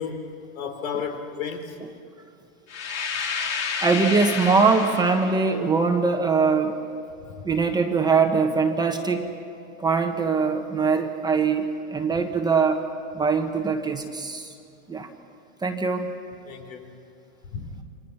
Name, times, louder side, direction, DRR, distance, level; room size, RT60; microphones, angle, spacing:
voice 1, 0.0-1.8 7.2-7.3 16.5-17.0 17.5-17.7, left 6 dB, 75° left, 6 dB, 3.8 m, -33 dB
sound 1, 2.7-5.5, left 5 dB, 35° left, 3.2 m, -30 dB
voice 2, 3.8-6.8 7.4-9.3 9.8-12.8 13.1-14.5 14.9-15.1 15.6-16.1, right 4 dB, 10° right, 4 dB, 1.2 m, -22 dB
28.5 x 26.5 x 5.9 m, 2.5 s
supercardioid pair, 150°, 41 cm